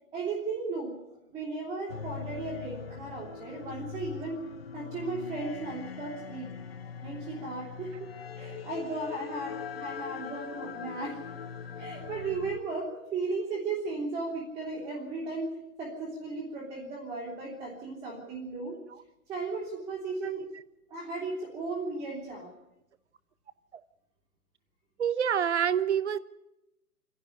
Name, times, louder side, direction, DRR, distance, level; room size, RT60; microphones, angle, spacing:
voice 1, 0.1-0.9 1.3-4.4 4.7-6.5 7.0-8.1 8.4-11.2 11.8-18.8 19.3-20.5 20.9-22.5, right 3 dB, 10° right, -6 dB, 2.9 m, -35 dB
sound 1, 1.9-12.6, left 7 dB, 40° left, 1.0 m, -41 dB
voice 2, 25.0-26.2, right 8 dB, 45° right, 15 dB, 1.0 m, -26 dB
27.0 x 11.0 x 9.7 m, 0.91 s
hypercardioid pair, 170°, 45 cm